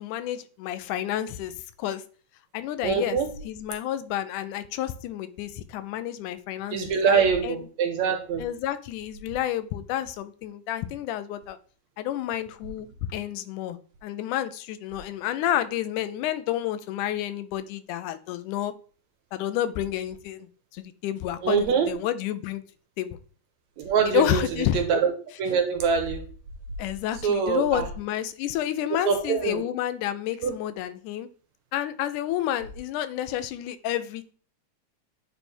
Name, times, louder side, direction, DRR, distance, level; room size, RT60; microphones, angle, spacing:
voice 1, 0.0-2.0 2.5-3.2 3.4-7.7 8.4-11.6 12.0-18.7 19.3-22.6 23.0-23.2 24.1-24.8 26.8-31.3 31.7-34.3, left 12 dB, 85° left, 12 dB, 2.2 m, -30 dB
voice 2, 2.8-3.3 6.7-8.4 21.4-21.9 23.8-24.4 24.7-25.1 25.4-26.2 27.2-27.8 29.1-29.6 30.4-30.5, right 6 dB, 70° right, 4 dB, 2.3 m, -24 dB
9.0 x 3.4 x 4.3 m, 0.41 s
omnidirectional pair, 3.5 m